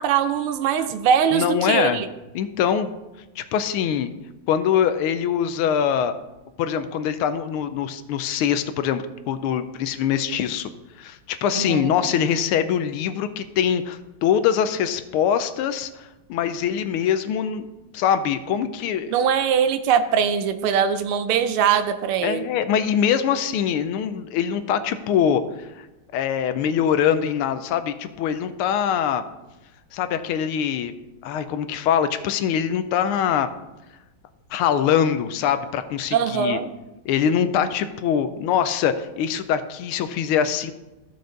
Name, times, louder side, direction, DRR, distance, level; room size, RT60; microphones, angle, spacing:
voice 1, 0.0-2.1 11.6-11.9 19.1-22.5 36.1-36.7, right 8 dB, 85° right, 9 dB, 1.6 m, -21 dB
voice 2, 1.3-2.0 2.3-2.9 3.4-4.1 4.5-6.1 6.6-10.7 11.0-17.7 17.9-19.1 22.2-25.9 26.1-29.2 29.9-30.9 31.2-33.5 34.5-36.6 37.0-40.7, left 8 dB, 85° left, 11 dB, 1.5 m, -23 dB
14.0 x 5.1 x 3.9 m, 1.0 s
omnidirectional pair, 2.3 m